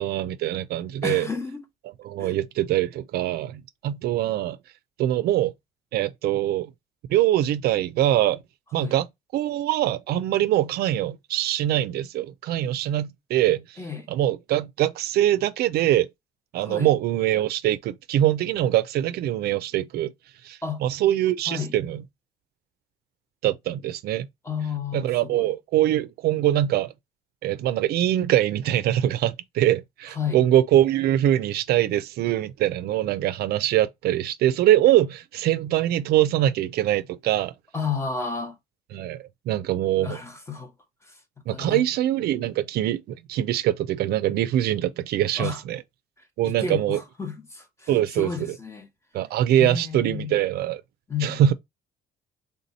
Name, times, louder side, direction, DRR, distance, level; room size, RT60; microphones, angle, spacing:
voice 1, 0.0-1.3 2.0-4.6 5.0-5.5 5.9-6.7 7.1-8.4 8.7-9.1 9.3-13.8 14.1-16.1 16.5-20.1 20.4-22.0 23.4-24.3 24.9-26.9 27.4-37.5 38.9-40.2 41.5-45.8 46.4-47.0 47.9-48.6 49.1-50.8 51.2-51.5, right 12 dB, 70° right, 0.4 m, -23 dB
voice 2, 1.0-1.6 2.2-2.3 8.8-8.9 13.8-14.1 16.6-16.9 20.6-20.8 21.5-21.7 24.4-25.5 30.2-30.5 37.7-38.6 40.0-40.7 41.1-41.2 41.5-41.8 45.4-45.6 46.4-47.9 48.2-48.9 49.6-50.4 51.1-51.4, left 5 dB, 15° left, 0.9 m, -31 dB
3.6 x 2.7 x 4.0 m
cardioid pair, 110°, 17 cm